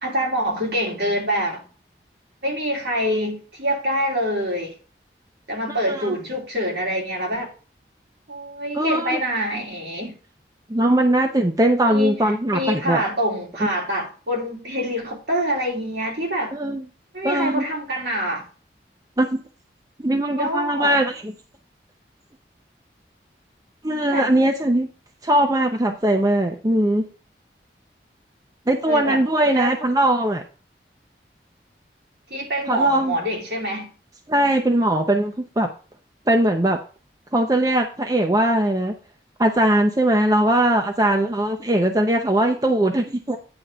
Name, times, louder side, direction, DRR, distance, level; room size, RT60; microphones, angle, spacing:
voice 1, 0.0-1.7 2.4-4.8 5.5-7.5 8.3-10.1 11.8-16.5 17.1-18.5 20.4-21.0 24.1-24.3 28.9-29.2 29.5-29.8 32.3-33.9, equal, 65° right, 3.0 m, -25 dB
voice 2, 5.7-6.1 8.7-9.2 10.7-13.0 16.5-16.8 17.2-17.6 19.2-19.4 20.0-21.3 23.8-24.9 25.2-27.0 28.7-30.4 32.7-33.2 34.3-35.7 36.3-36.8 37.3-38.9 39.4-43.4, right 1 dB, 20° right, 0.7 m, -20 dB
9.6 x 3.7 x 6.6 m
head